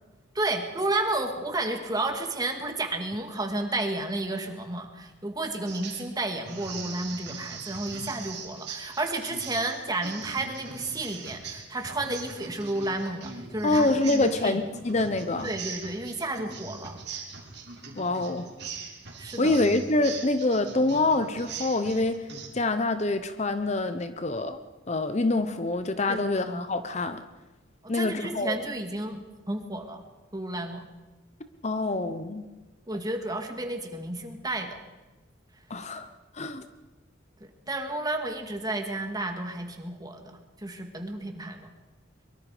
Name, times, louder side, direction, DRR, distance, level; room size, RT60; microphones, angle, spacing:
voice 1, 0.3-14.6 15.4-17.0 19.2-19.6 26.1-26.6 27.8-29.2 29.5-30.0 30.3-30.9 32.9-34.8 37.4-41.7, right 2 dB, 20° right, 5 dB, 2.1 m, -32 dB
Drums sample, 5.7-6.1 6.4-22.5, right 5 dB, 60° right, 3.7 m, -41 dB
voice 2, 13.6-15.5 18.0-18.5 19.4-22.3 22.5-24.6 24.9-27.2 27.9-28.5 31.6-32.4 35.7-36.1 36.3-36.6, left 2 dB, 35° left, 10 dB, 0.8 m, -26 dB
23.5 x 23.0 x 5.0 m, 1.1 s
head